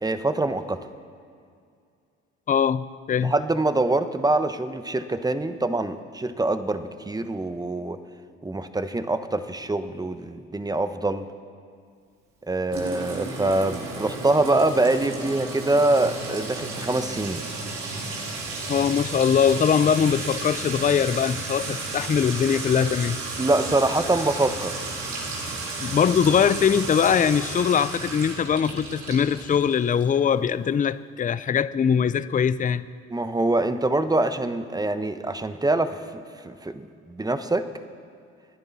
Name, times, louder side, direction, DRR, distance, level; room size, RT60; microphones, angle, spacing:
voice 1, 0.0-0.8 3.2-8.0 8.4-11.2 12.5-17.4 23.4-24.7 33.1-37.6, right 2 dB, 10° right, 10 dB, 1.2 m, -24 dB
voice 2, 2.5-3.3 18.7-23.2 25.8-32.8, left 7 dB, 25° left, 16 dB, 0.6 m, -22 dB
Sink (filling or washing) / Trickle dribble / Fill (with liquid), 12.7-30.2, right 3 dB, 65° right, 4.0 m, -33 dB
29.5 x 10.5 x 4.2 m, 2.3 s
hypercardioid pair, 65°, 30 cm